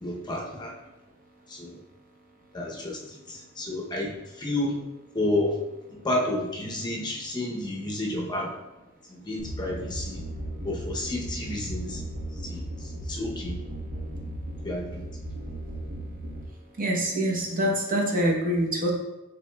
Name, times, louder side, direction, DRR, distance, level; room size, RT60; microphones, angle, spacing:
voice 1, 0.0-0.7 1.5-1.8 2.5-4.8 5.1-5.6 5.9-8.5 9.1-10.2 10.6-12.0 12.4-13.6 14.6-15.0, left 1 dB, 20° left, -1 dB, 0.7 m, -31 dB
sound 1, 9.4-16.4, right 1 dB, 70° right, 1.2 m, -36 dB
voice 2, 16.8-18.9, right 1 dB, 45° right, -1 dB, 0.8 m, -25 dB
6.0 x 3.9 x 2.2 m, 1.0 s
head